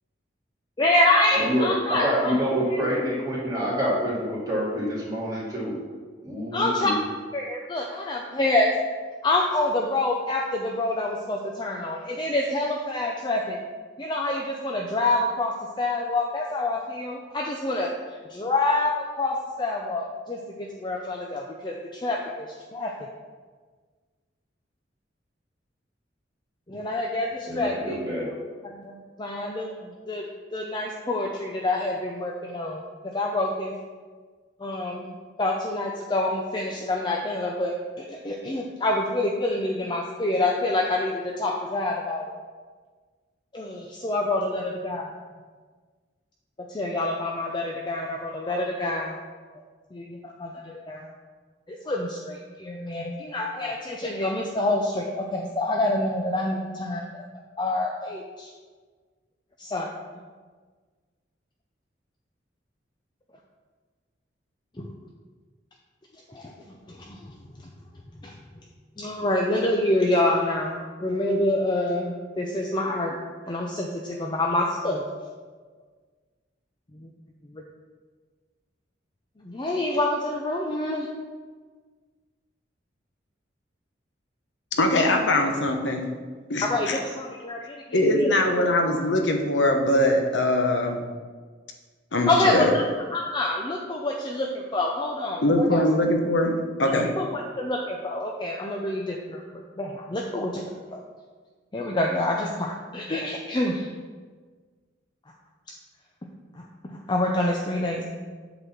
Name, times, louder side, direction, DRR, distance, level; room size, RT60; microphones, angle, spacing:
voice 1, 0.8-2.3 2.7-2.8 6.5-6.9 7.3-8.7 9.2-13.6 14.0-17.9 18.3-22.9 26.7-28.0 28.6-30.3 30.5-32.8 33.1-33.7 34.6-42.3 43.5-45.1 46.7-49.2 49.9-51.1 51.7-57.2 57.6-58.5 59.6-59.9 64.8-64.9 66.3-66.5 66.9-67.4 68.2-68.3 69.0-73.2 73.5-75.0 76.9-77.1 77.4-77.6 79.4-81.1 86.6-88.3 92.3-92.8 93.1-95.8 96.9-101.0 101.7-103.9 106.6-108.0, left 2 dB, 25° left, 0 dB, 0.6 m, -27 dB
voice 2, 1.3-1.7 2.0-5.8 6.2-7.0 27.5-28.3, equal, 20° right, -7 dB, 2.4 m, -27 dB
voice 3, 84.8-86.0 86.5-87.0 87.9-91.0 92.1-92.7 95.4-96.5 96.8-97.1, left 1 dB, 80° left, 3 dB, 1.0 m, -22 dB
8.1 x 4.1 x 5.9 m, 1.5 s
head